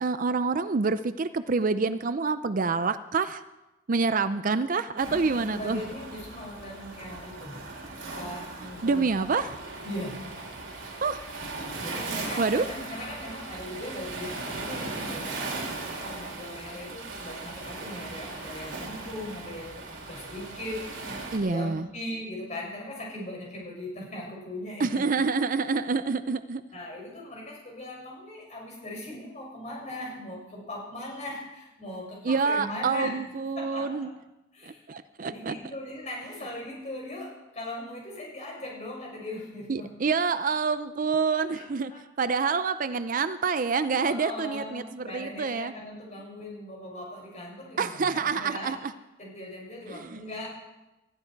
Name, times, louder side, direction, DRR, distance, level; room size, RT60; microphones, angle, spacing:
voice 1, 0.0-3.4 3.9-5.8 8.8-9.6 11.0-11.2 12.4-12.6 21.3-21.9 24.8-26.6 32.2-34.1 34.7-35.6 39.7-45.7 47.8-48.9 49.9-50.2, right 4 dB, 45° right, 12 dB, 0.5 m, -27 dB
voice 2, 5.0-7.6 8.0-9.5 9.8-10.8 11.8-25.0 26.7-33.2 33.6-34.1 34.5-34.9 35.2-39.9 41.3-42.0 44.0-48.7 49.2-50.5, left 1 dB, 35° left, -2 dB, 6.7 m, -39 dB
Waves surf, 5.0-21.4, right 3 dB, 70° right, 3.6 m, -38 dB
20.0 x 14.0 x 4.6 m, 1.0 s
head